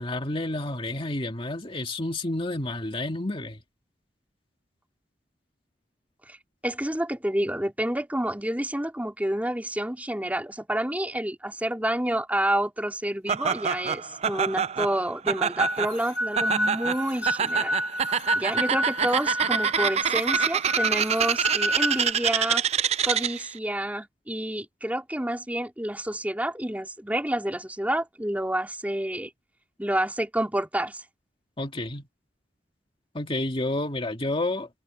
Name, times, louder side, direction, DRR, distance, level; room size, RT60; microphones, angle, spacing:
voice 1, 0.0-3.6 31.6-32.1 33.1-34.7, left 2 dB, 30° left, 2.2 m, -30 dB
voice 2, 6.6-17.7 18.3-22.6 23.0-29.3 29.8-31.0, right 1 dB, 10° right, 2.6 m, -29 dB
Laughter, 13.3-23.5, right 7 dB, 35° right, 0.5 m, -26 dB
sound 1, 15.6-22.1, equal, 70° left, 1.3 m, -29 dB
head